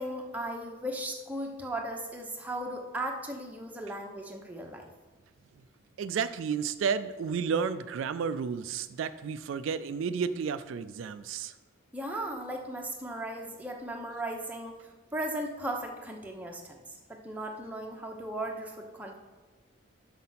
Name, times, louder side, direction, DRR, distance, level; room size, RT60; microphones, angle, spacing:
voice 1, 0.0-4.9 11.9-14.8 15.1-16.8 17.1-19.2, right 1 dB, 10° right, 1 dB, 0.8 m, -36 dB
voice 2, 6.0-11.5, right 6 dB, 75° right, 12 dB, 0.3 m, -32 dB
6.3 x 5.7 x 5.7 m, 1.3 s
head